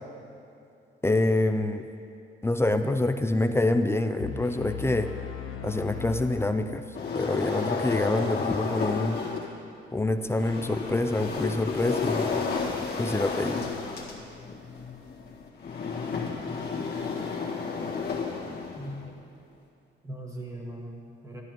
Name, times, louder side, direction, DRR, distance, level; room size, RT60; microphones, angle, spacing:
voice 1, 1.0-1.9 2.4-5.1 5.6-6.8 7.1-9.2 9.9-12.5 13.0-13.6, left 2 dB, 15° left, 8 dB, 0.4 m, -26 dB
sound 1, 4.2-7.1, left 9 dB, 90° left, 0.8 m, -38 dB
sound 2, 6.9-9.5 10.2-19.1, left 5 dB, 55° left, 1.7 m, -32 dB
voice 2, 18.7-19.2 20.0-21.4, right 1 dB, 15° right, -1 dB, 1.9 m, -39 dB
13.0 x 11.0 x 3.0 m, 2.6 s
cardioid pair, 90°, 20 cm